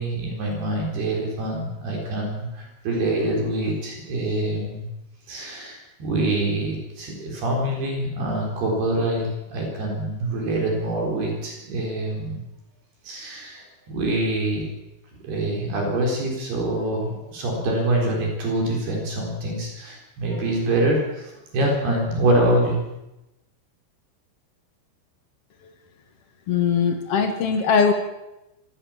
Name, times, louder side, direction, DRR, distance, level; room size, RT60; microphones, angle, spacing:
voice 1, 0.0-4.9 5.3-12.4 13.0-14.6 15.2-22.8, right 1 dB, 55° right, 0 dB, 6.0 m, -25 dB
voice 2, 26.5-27.9, left 6 dB, 85° left, 6 dB, 1.3 m, -20 dB
25.0 x 15.5 x 7.3 m, 0.95 s
omnidirectional pair, 5.5 m